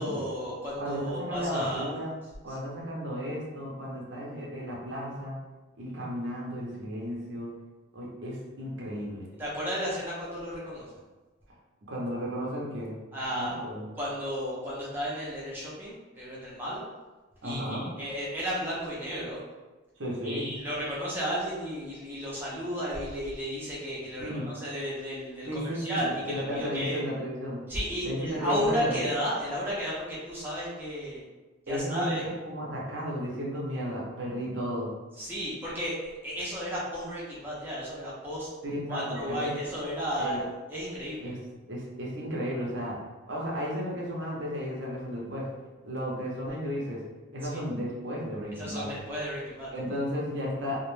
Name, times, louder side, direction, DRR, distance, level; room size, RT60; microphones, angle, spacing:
voice 1, 0.0-1.9 9.4-10.9 13.1-13.6 14.0-16.8 17.4-19.4 20.2-27.0 27.7-31.2 31.7-32.3 35.2-38.5 38.9-41.4 47.4-47.6 48.6-49.7, equal, 10° right, -7 dB, 0.5 m, -33 dB
voice 2, 0.8-2.1 2.4-5.4 5.8-7.5 7.9-9.3 11.8-13.0 13.3-13.9 17.4-17.9 20.0-20.5 24.2-24.5 25.5-27.6 28.0-29.0 31.7-32.1 32.4-34.9 38.6-39.5 40.2-40.4 41.2-41.4 41.7-43.0 43.3-45.5 45.8-47.0 47.3-48.9 49.7-50.9, equal, 70° right, -3 dB, 0.6 m, -34 dB
2.3 x 2.1 x 3.1 m, 1.2 s
head